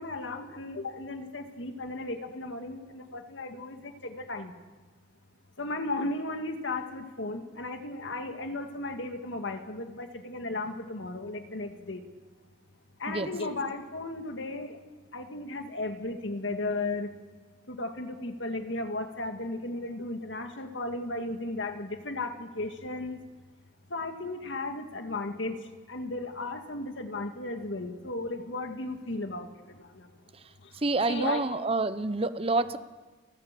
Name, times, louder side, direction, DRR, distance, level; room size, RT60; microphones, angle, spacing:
voice 1, 0.0-4.5 5.6-12.0 13.0-14.8 15.1-17.1 17.7-23.2 23.9-25.6 25.9-29.5 29.9-30.1 31.1-31.4, left 2 dB, 85° left, 6 dB, 2.0 m, -35 dB
voice 2, 30.8-32.8, right 3 dB, 30° right, 13 dB, 0.8 m, -28 dB
30.0 x 12.5 x 7.6 m, 1.3 s
head